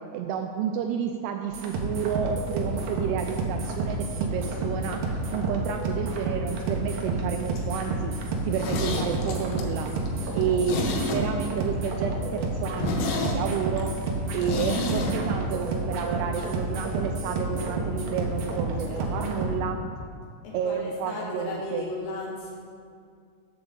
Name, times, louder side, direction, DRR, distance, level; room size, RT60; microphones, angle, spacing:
voice 1, 0.1-8.1 8.4-9.9 10.3-13.9 14.3-19.8 20.5-21.9, right 7 dB, 85° right, 4 dB, 2.4 m, -31 dB
sound 1, 1.5-19.6, right 2 dB, 65° right, 2.4 m, -30 dB
Zipper (clothing), 8.3-11.6 11.9-12.0 12.4-12.5 12.7-15.2 15.4-15.5, left 2 dB, 90° left, 3.5 m, -30 dB
voice 2, 10.2-10.5 18.9-19.5 20.4-22.5, left 2 dB, 65° left, -4 dB, 3.8 m, -37 dB
14.0 x 8.1 x 3.9 m, 2.2 s
omnidirectional pair, 5.1 m